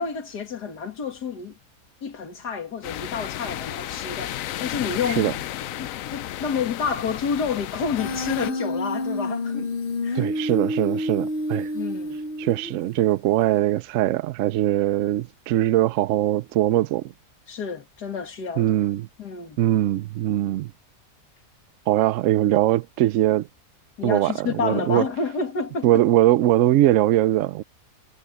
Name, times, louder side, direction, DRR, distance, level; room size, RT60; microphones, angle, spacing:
voice 1, 0.0-1.6 2.0-5.3 5.6-9.7 10.0-10.3 11.7-12.2 17.5-18.7 19.2-19.6 24.0-26.0, left 6 dB, 85° left, 2.6 m, -29 dB
sound 1, 2.8-8.5, left 13 dB, 65° left, 0.9 m, -33 dB
Human voice, 8.0-12.9, left 1 dB, 40° left, 1.1 m, -28 dB
voice 2, 10.1-11.7 12.4-17.1 18.6-19.1 19.6-20.7 21.9-23.5 24.0-25.1 25.8-27.6, right 14 dB, 65° right, 0.8 m, -21 dB
omnidirectional pair, 1.7 m